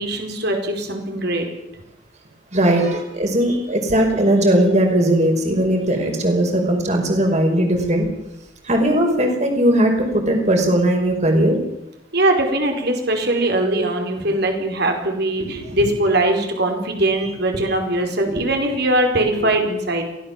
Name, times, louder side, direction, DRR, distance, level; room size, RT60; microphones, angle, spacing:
voice 1, 0.0-1.5 12.1-20.0, right 1 dB, 55° right, 4 dB, 5.0 m, -21 dB
voice 2, 2.5-8.1 8.6-11.6 15.4-15.8 18.3-18.4 19.4-19.5, right 1 dB, 35° right, 3 dB, 5.3 m, -18 dB
23.0 x 17.5 x 7.5 m, 0.87 s
head